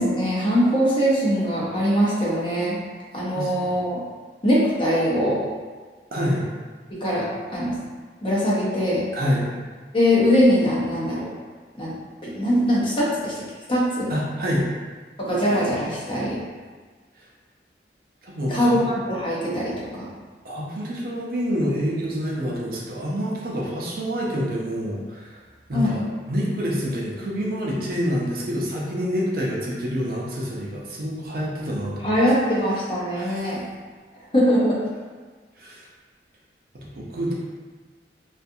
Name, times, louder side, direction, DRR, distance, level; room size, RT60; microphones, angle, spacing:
voice 1, 0.0-2.8 3.1-4.0 4.4-5.4 6.9-7.2 7.5-7.8 8.2-9.0 9.9-11.3 11.8-11.9 12.2-13.3 13.7-14.1 15.2-16.4 18.5-20.0 25.7-26.0 32.0-33.6 34.3-34.8, equal, 30° left, -7 dB, 0.6 m, -21 dB
voice 2, 3.3-3.8 6.1-6.4 9.1-9.5 14.1-14.7 18.2-18.9 20.4-25.4 25.7-32.2 33.1-33.6 35.6-35.8 36.9-37.3, equal, 55° right, -4 dB, 0.5 m, -27 dB
2.4 x 2.4 x 2.7 m, 1.4 s
head